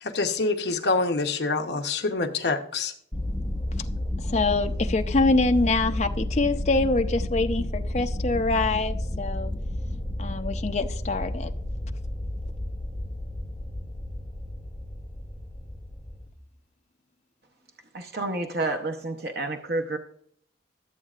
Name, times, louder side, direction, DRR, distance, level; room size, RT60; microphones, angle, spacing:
voice 1, 0.0-2.9, left 3 dB, 65° left, 5 dB, 0.9 m, -26 dB
sound 1, 3.1-16.3, left 1 dB, 10° left, 1.1 m, -31 dB
voice 2, 4.3-9.5 10.2-11.5, left 3 dB, 40° left, 6 dB, 0.6 m, -25 dB
voice 3, 17.9-20.0, right 2 dB, 60° right, 4 dB, 0.8 m, -29 dB
13.0 x 8.0 x 2.4 m, 0.63 s
head